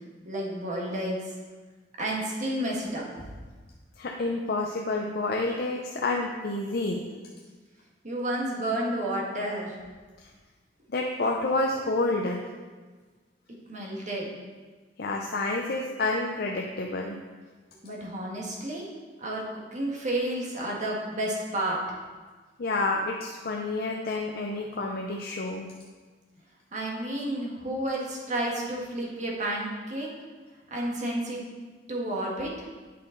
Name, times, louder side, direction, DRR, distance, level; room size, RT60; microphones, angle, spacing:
voice 1, 0.2-1.3 2.0-3.3 8.0-9.7 13.7-14.3 17.8-18.9 19.2-21.8 26.7-30.1 30.7-31.4 31.9-32.5, right 1 dB, 40° right, -2 dB, 1.5 m, -31 dB
voice 2, 4.0-7.2 10.9-12.4 15.0-17.2 22.6-25.7, left 2 dB, 55° left, 0 dB, 0.6 m, -29 dB
8.4 x 5.8 x 3.8 m, 1.4 s
head